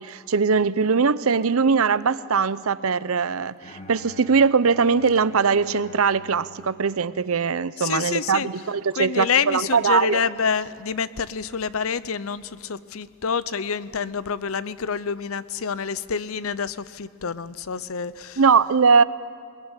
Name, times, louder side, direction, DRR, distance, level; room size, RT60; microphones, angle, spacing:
voice 1, 0.0-10.2 18.4-19.0, right 5 dB, 90° right, 17 dB, 0.7 m, -21 dB
Bowed string instrument, 3.6-7.8, left 1 dB, 35° left, 1.6 m, -47 dB
voice 2, 7.8-8.5 8.9-18.4, left 6 dB, 85° left, 17 dB, 0.7 m, -27 dB
22.0 x 21.0 x 9.8 m, 2.1 s
head